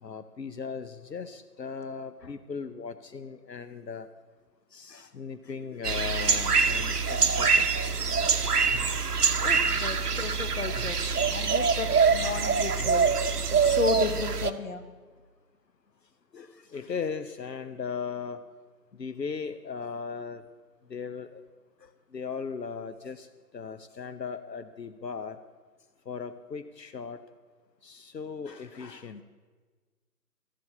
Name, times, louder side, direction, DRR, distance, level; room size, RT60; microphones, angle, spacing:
voice 1, 0.0-4.1 4.7-7.7 10.7-10.8 16.3-18.4 18.9-20.4 20.9-21.4 21.8-23.3 23.5-25.4 26.1-27.2 27.8-29.2, left 5 dB, 80° left, 10 dB, 0.8 m, -37 dB
sound 1, 5.8-14.5, right 5 dB, 70° right, 0.9 m, -25 dB
voice 2, 9.4-11.0 11.3-13.1 13.6-14.8, left 4 dB, 50° left, 9 dB, 1.1 m, -33 dB
12.5 x 7.7 x 8.5 m, 1.4 s
figure-of-eight pair, 155°, 49 cm